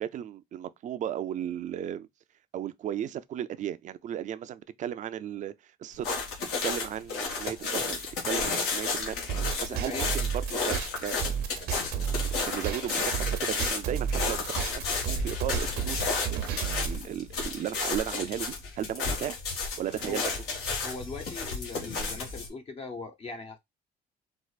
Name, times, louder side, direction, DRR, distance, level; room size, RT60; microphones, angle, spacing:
voice 1, 0.0-2.1 2.5-6.1 6.6-9.2 9.6-11.2 11.6-14.4 14.7-16.0 16.3-19.4 19.8-20.2, right 10 dB, 45° right, 0.4 m, -35 dB
sound 1, 6.0-22.5, left 4 dB, 80° left, 1.6 m, -32 dB
sound 2, 9.3-17.0, right 8 dB, 75° right, 0.8 m, -32 dB
voice 2, 9.7-10.1 10.7-10.8 20.0-20.3 20.8-23.6, left 3 dB, 35° left, 0.7 m, -40 dB
4.4 x 2.4 x 2.3 m
cardioid pair, 110°, 17 cm